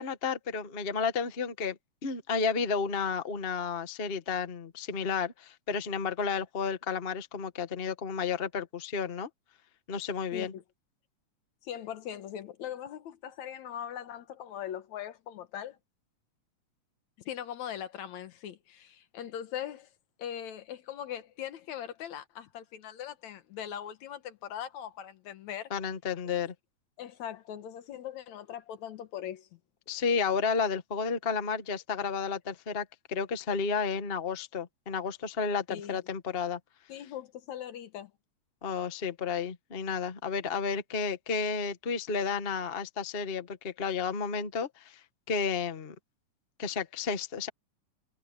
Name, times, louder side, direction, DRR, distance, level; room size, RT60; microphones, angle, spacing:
voice 1, 0.0-9.3 9.9-10.5 25.7-26.5 29.9-36.6 38.6-45.0 45.3-45.9 46.6-47.5, left 5 dB, 50° left, 0.6 m, -32 dB
voice 2, 10.3-10.6 11.6-15.8 17.3-19.9 20.2-25.7 27.0-29.6 35.7-36.0 36.9-38.1, left 10 dB, 70° left, 2.4 m, -40 dB
omnidirectional pair, 3.5 m